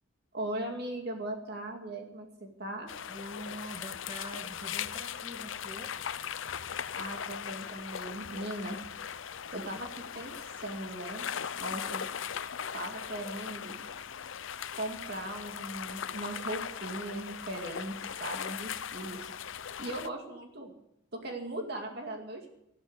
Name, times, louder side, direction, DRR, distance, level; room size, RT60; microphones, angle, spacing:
voice 1, 0.3-2.9 6.9-8.8 9.5-12.1 12.7-13.8 14.8-19.3 19.8-20.7 21.1-22.5, right 1 dB, 55° right, 3 dB, 2.3 m, -39 dB
sound 1, 2.9-20.1, left 8 dB, 80° left, 0.6 m, -39 dB
voice 2, 3.1-6.0, equal, 30° right, 2 dB, 1.5 m, -44 dB
14.0 x 12.5 x 8.0 m, 0.80 s
head